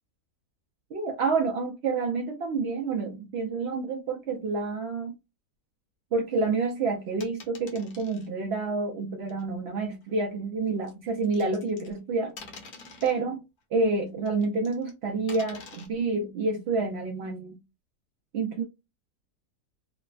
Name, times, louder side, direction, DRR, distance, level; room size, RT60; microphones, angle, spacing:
voice 1, 0.9-5.1 6.1-12.3 13.0-13.4 13.7-17.6 18.3-18.6, right 3 dB, 75° right, 0.5 m, -28 dB
sound 1, 7.2-8.3 9.3-9.4 10.9-12.0 12.4-13.2 14.2-14.9 15.3-15.9, left 4 dB, 75° left, 1.3 m, -46 dB
3.1 x 2.0 x 2.3 m
omnidirectional pair, 1.7 m